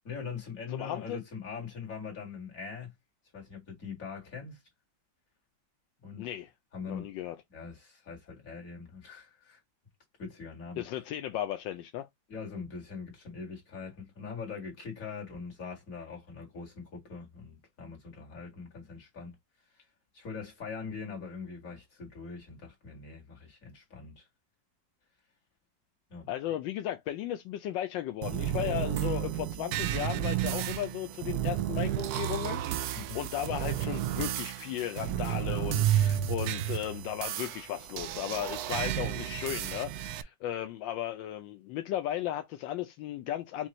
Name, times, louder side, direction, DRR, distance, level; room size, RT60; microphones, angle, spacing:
voice 1, 0.0-2.9 3.3-4.6 6.0-6.3 6.7-7.1 7.5-9.6 10.2-10.8 12.3-19.4 19.8-19.9 20.1-24.3 26.1-26.3 32.9-33.2, left 5 dB, 45° left, 2.4 m, -42 dB
voice 2, 0.7-1.2 6.2-6.5 6.9-7.4 10.8-12.1 26.3-43.7, left 12 dB, 80° left, 1.3 m, -35 dB
sound 1, 28.2-40.2, right 12 dB, 75° right, 0.9 m, -32 dB
5.6 x 2.6 x 3.0 m
omnidirectional pair, 2.0 m